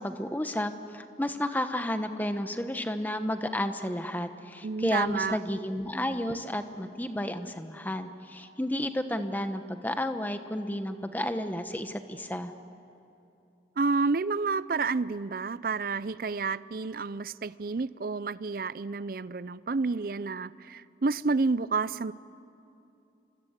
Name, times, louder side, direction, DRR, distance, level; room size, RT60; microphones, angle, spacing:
voice 1, 0.0-12.5, left 1 dB, 10° left, 8 dB, 1.1 m, -32 dB
voice 2, 4.6-5.4 13.8-22.1, right 4 dB, 55° right, 18 dB, 0.5 m, -30 dB
28.0 x 25.5 x 8.2 m, 2.9 s
head